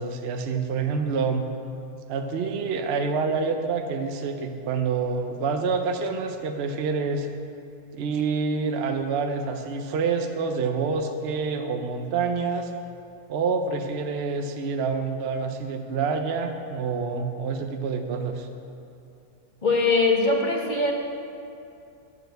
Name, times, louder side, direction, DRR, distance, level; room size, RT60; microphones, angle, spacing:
voice 1, 0.0-1.5 2.1-7.3 7.9-12.7 13.3-18.5, right 5 dB, 55° right, 5 dB, 0.8 m, -27 dB
voice 2, 19.6-20.9, left 3 dB, 35° left, 0 dB, 1.1 m, -21 dB
11.0 x 4.9 x 7.7 m, 2.6 s
omnidirectional pair, 1.6 m